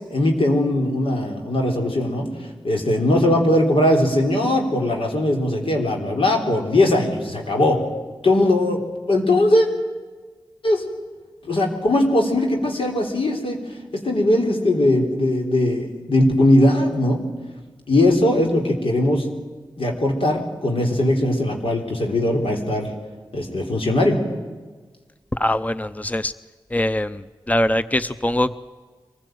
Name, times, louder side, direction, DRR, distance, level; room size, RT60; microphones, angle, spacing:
voice 1, 0.0-2.3 2.6-7.8 8.2-8.8 9.1-9.7 10.6-10.8 11.4-13.6 13.9-17.2 17.9-19.3 19.8-22.9 23.3-24.2, left 1 dB, 85° left, 2 dB, 3.8 m, -19 dB
voice 2, 25.3-26.3 26.7-28.6, left 1 dB, 15° left, 13 dB, 0.7 m, -22 dB
24.0 x 16.0 x 9.2 m, 1.4 s
cardioid pair, 45°, 9 cm